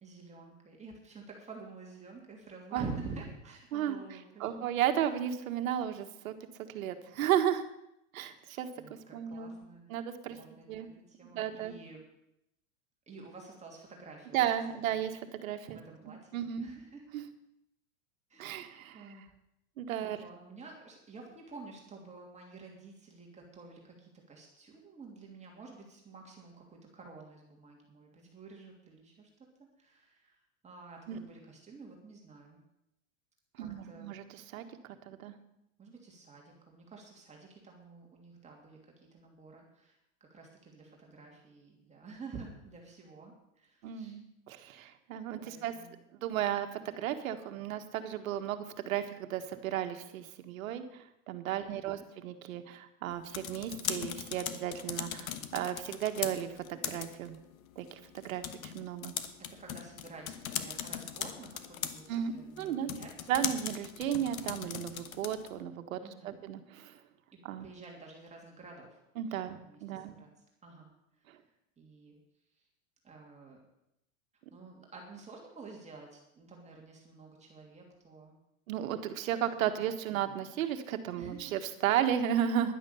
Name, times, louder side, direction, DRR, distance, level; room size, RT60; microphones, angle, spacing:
voice 1, 0.0-4.7 8.4-9.8 10.3-12.0 13.1-14.5 14.8-15.0 15.7-17.1 18.3-19.3 20.0-29.3 29.6-30.4 30.6-32.6 33.6-34.1 35.8-40.0 40.3-44.2 45.4-45.9 51.6-52.1 59.4-63.5 66.0-66.4 67.3-69.0 69.5-70.3 70.6-70.9 71.2-71.3 71.8-72.1 73.0-73.6 74.5-78.3 81.2-81.5, right 4 dB, 15° right, -1 dB, 2.9 m, -50 dB
voice 2, 4.4-6.4 6.7-7.7 8.1-8.7 9.1-9.5 9.9-10.4 10.7-10.9 11.2-11.8 14.3-15.8 16.1-16.7 17.1-17.2 18.4-19.1 19.8-20.2 31.1-31.2 33.6-34.7 35.1-35.3 43.8-45.7 46.2-46.7 47.0-57.4 57.8-59.1 62.1-62.9 63.3-67.0 67.4-67.7 69.2-70.1 78.7-82.7, right 10 dB, 80° right, 8 dB, 1.7 m, -34 dB
sound 1, 53.1-65.6, left 10 dB, 90° left, 1.3 m, -40 dB
11.0 x 9.9 x 7.0 m, 0.81 s
supercardioid pair, 130°, 40 cm